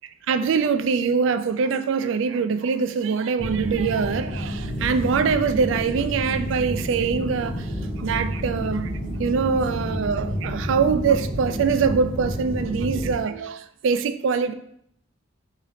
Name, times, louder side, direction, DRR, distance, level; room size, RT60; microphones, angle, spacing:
voice 1, 0.3-7.7 8.0-8.9 9.2-14.5, right 5 dB, 70° right, 10 dB, 0.3 m, -23 dB
sound 1, 3.4-13.1, equal, 40° left, 1.0 m, -30 dB
4.0 x 2.8 x 4.9 m, 0.71 s
head